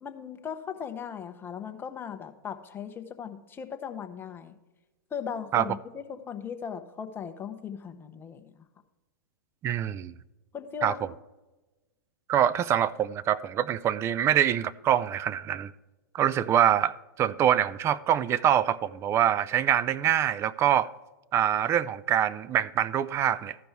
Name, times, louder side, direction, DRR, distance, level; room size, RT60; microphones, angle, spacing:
voice 1, 0.0-4.6 5.1-8.5 10.5-11.1, left 7 dB, 20° left, 0.9 m, -38 dB
voice 2, 9.6-10.1 10.8-10.9 12.3-15.7 16.1-20.9 21.3-23.6, right 10 dB, 25° right, 0.4 m, -25 dB
14.0 x 5.3 x 4.5 m
hypercardioid pair, 120°, 11 cm